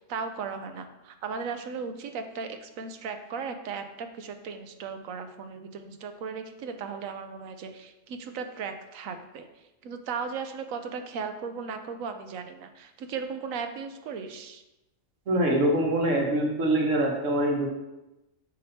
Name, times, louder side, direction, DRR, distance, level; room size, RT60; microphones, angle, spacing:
voice 1, 0.0-14.6, right 5 dB, 85° right, 8 dB, 1.1 m, -36 dB
voice 2, 15.3-17.7, right 1 dB, 70° right, 0 dB, 1.6 m, -24 dB
6.7 x 5.3 x 2.8 m, 0.96 s
omnidirectional pair, 1.4 m